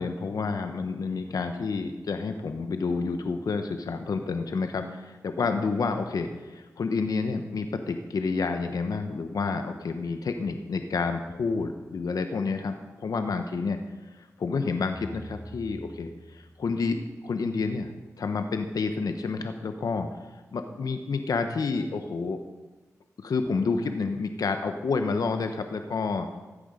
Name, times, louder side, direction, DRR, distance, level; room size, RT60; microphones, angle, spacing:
voice 1, 0.0-13.8 14.0-17.9 18.2-20.1 20.5-22.4 23.2-26.3, left 4 dB, 75° left, 7 dB, 1.0 m, -29 dB
sound 1, 14.9-17.3, equal, 15° left, 1.9 m, -46 dB
15.0 x 8.7 x 5.1 m, 1.2 s
cardioid pair, 40°, 6 cm